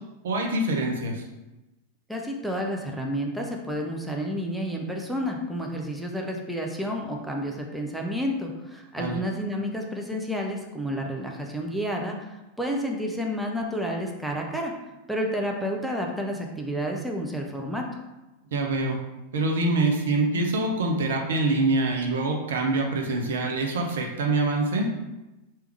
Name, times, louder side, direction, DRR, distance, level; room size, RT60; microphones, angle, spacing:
voice 1, 0.2-1.2 9.0-9.1 18.5-19.0 19.3-24.9, right 2 dB, 60° right, 1 dB, 0.8 m, -25 dB
voice 2, 2.1-12.3 12.6-14.7 15.1-17.9, equal, 5° right, 0 dB, 0.6 m, -30 dB
3.4 x 3.1 x 4.7 m, 1.0 s
figure-of-eight pair, 90°, 0 cm